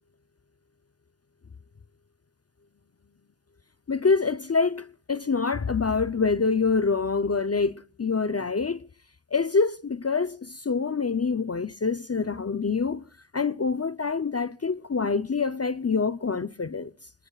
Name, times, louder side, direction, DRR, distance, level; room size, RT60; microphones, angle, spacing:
voice 1, 3.9-8.8 9.3-13.1 13.3-16.9, left 4 dB, 35° left, 0.7 m, -26 dB
29.0 x 20.0 x 2.4 m
wide cardioid pair, 75°, 43 cm